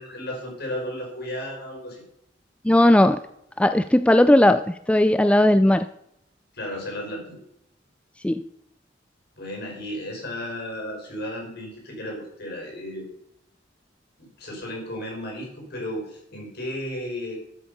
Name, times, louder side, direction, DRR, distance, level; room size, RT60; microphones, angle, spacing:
voice 1, 0.0-2.0 6.5-7.4 9.4-13.1 14.2-17.4, left 1 dB, 60° left, 0 dB, 5.2 m, -34 dB
voice 2, 2.6-3.2 3.6-5.9 8.2-8.5, left 1 dB, 5° left, 11 dB, 0.3 m, -17 dB
13.5 x 8.3 x 5.4 m, 0.77 s
head